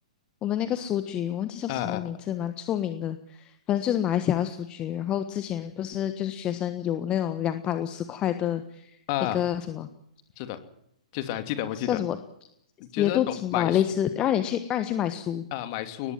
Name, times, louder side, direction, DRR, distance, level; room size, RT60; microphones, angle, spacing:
voice 1, 0.4-8.9 9.2-9.9 11.7-12.2 13.0-15.4, left 11 dB, 25° left, 10 dB, 1.4 m, -28 dB
voice 2, 1.7-2.0 9.1-9.4 10.4-10.6 11.1-12.0 12.8-13.8 15.5-16.1, left 12 dB, 40° left, 9 dB, 2.7 m, -31 dB
22.5 x 20.0 x 7.5 m, 0.75 s
figure-of-eight pair, 115°, 4 cm